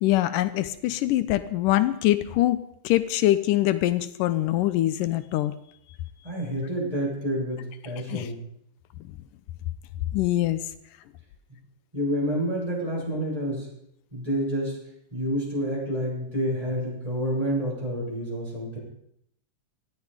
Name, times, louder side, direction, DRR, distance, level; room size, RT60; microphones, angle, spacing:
voice 1, 0.0-2.6 2.8-5.6 8.1-8.3 10.1-10.6, left 15 dB, 85° left, 12 dB, 2.4 m, -23 dB
voice 2, 6.2-8.4 11.9-13.7 14.1-14.8 15.1-18.8, equal, 10° right, -4 dB, 7.2 m, -28 dB
18.0 x 14.0 x 5.2 m, 0.73 s
omnidirectional pair, 3.7 m